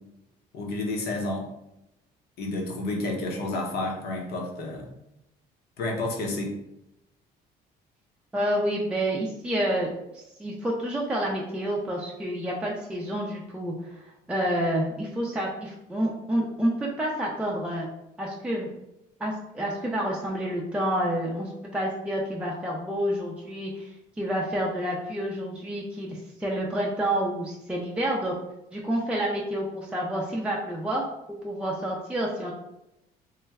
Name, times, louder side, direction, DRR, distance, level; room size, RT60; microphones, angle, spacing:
voice 1, 0.5-1.5 2.4-4.9 5.8-6.6, left 2 dB, 70° left, 0 dB, 0.9 m, -30 dB
voice 2, 8.3-17.9 18.2-18.7 19.2-28.3 28.7-32.5, right 1 dB, 5° right, -3 dB, 0.5 m, -29 dB
3.1 x 2.1 x 3.4 m, 0.86 s
cardioid pair, 110°, 17 cm